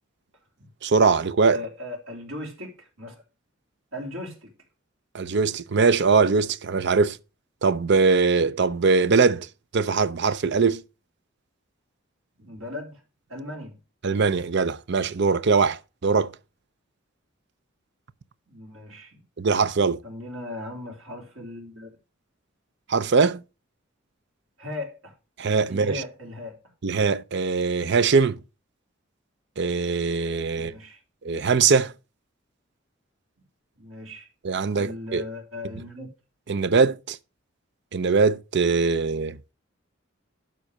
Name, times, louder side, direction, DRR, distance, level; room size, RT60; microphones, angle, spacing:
voice 1, 0.8-1.6 5.1-7.2 7.6-9.5 9.7-10.8 14.0-16.3 19.4-20.0 22.9-23.4 25.4-26.0 26.8-28.4 29.6-30.7 31.2-31.9 34.4-35.2 36.5-37.2 37.9-39.4, right 4 dB, 55° right, 0.6 m, -21 dB
voice 2, 1.5-3.1 3.9-4.5 12.4-13.0 13.3-13.8 18.5-19.2 20.0-21.9 24.6-25.1 25.7-26.6 30.5-31.0 33.8-34.3 34.8-36.1, left 2 dB, 80° right, 3.7 m, -37 dB
12.0 x 4.0 x 6.4 m
head